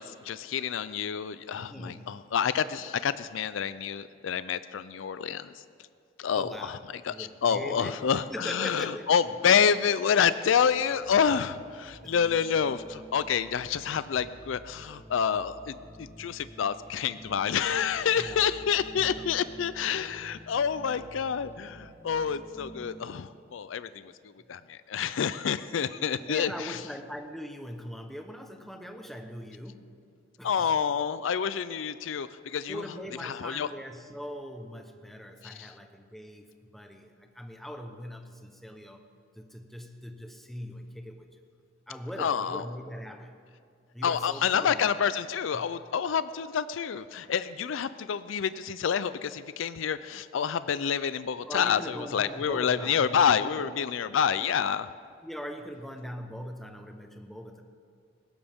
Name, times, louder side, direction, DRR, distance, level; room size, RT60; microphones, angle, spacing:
voice 1, 0.0-5.5 6.2-6.8 7.0-24.1 24.5-26.8 30.4-32.8 33.2-33.7 35.4-35.7 42.2-42.6 44.0-54.9, left 7 dB, 80° left, 14 dB, 0.4 m, -28 dB
voice 2, 1.5-2.2 6.3-6.8 7.1-9.1 9.4-9.6 12.0-12.4 18.2-19.2 26.2-30.0 30.4-30.8 32.7-39.0 39.3-41.4 41.9-43.3 43.9-44.9 45.5-45.8 51.5-53.7 55.2-57.6, equal, ahead, 5 dB, 1.0 m, -41 dB
sound 1, 10.5-23.0, right 1 dB, 15° right, 2.5 m, -49 dB
19.5 x 16.5 x 3.6 m, 2.3 s
head